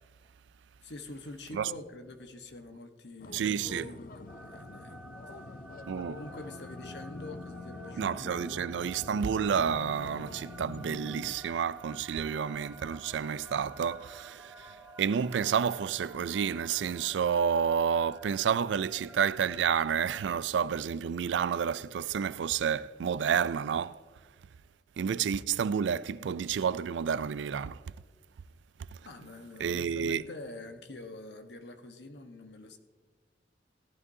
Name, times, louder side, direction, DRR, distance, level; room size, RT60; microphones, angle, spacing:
voice 1, 0.8-5.0 5.3-5.4 6.1-8.7 29.0-32.8, left 2 dB, 70° left, 1.1 m, -46 dB
sound 1, 3.2-11.3, left 3 dB, 50° left, 0.5 m, -46 dB
voice 2, 3.3-3.9 5.9-6.2 8.0-24.0 25.0-27.8 29.6-30.2, right 7 dB, 85° right, 0.4 m, -30 dB
sound 2, 4.3-20.3, right 2 dB, 5° right, 0.8 m, -51 dB
17.0 x 12.0 x 2.7 m
head